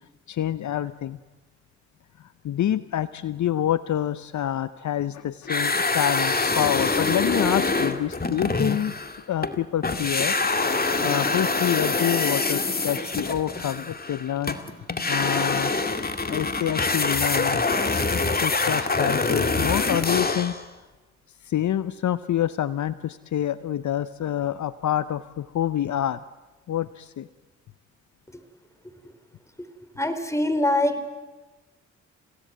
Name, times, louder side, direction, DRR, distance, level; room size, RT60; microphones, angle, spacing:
voice 1, 0.3-1.2 2.4-8.9 9.3-10.4 11.0-14.6 15.1-15.7 16.3-17.6 18.1-20.5 21.4-26.2 26.7-27.3, left 11 dB, 60° left, 15 dB, 0.8 m, -27 dB
sound 1, 5.5-9.6 9.8-20.6, left 3 dB, 30° left, 2.4 m, -25 dB
voice 2, 30.0-31.2, left 1 dB, 10° left, 11 dB, 3.9 m, -24 dB
30.0 x 17.0 x 9.3 m, 1.2 s
supercardioid pair, 50°, 33 cm